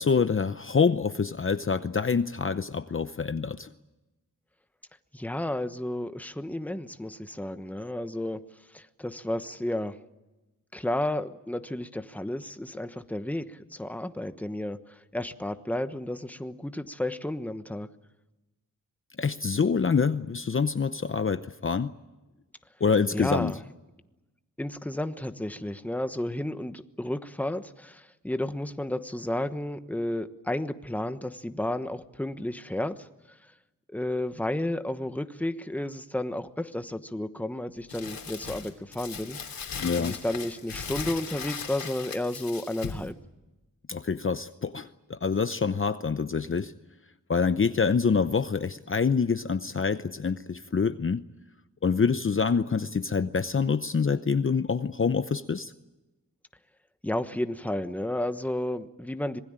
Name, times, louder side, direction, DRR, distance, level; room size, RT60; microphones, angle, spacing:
voice 1, 0.0-3.7 19.2-21.9 22.8-23.6 39.8-40.1 43.9-46.7 47.3-51.3 51.8-55.7, left 5 dB, 35° left, 11 dB, 0.8 m, -26 dB
voice 2, 5.1-8.4 8.7-10.0 10.7-17.9 23.1-23.6 24.6-33.1 33.9-43.1 57.0-59.4, left 1 dB, 5° left, 10 dB, 1.2 m, -32 dB
Crumpling crinkling, 37.9-43.1, left 6 dB, 85° left, 3.0 m, -38 dB
26.0 x 20.5 x 8.9 m, 1.1 s
wide cardioid pair, 100°, 34 cm